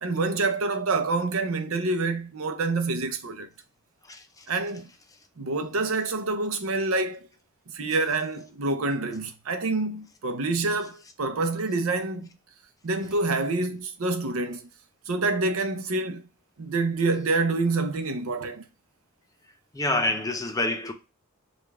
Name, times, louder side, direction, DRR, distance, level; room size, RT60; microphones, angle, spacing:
voice 1, 0.0-3.5 4.5-4.9 5.4-7.3 7.7-12.3 12.8-14.7 15.1-16.2 16.6-18.6, right 3 dB, 75° right, 0.7 m, -27 dB
voice 2, 4.1-4.5 19.7-20.9, left 2 dB, 15° left, 0.5 m, -27 dB
4.9 x 2.4 x 3.4 m
head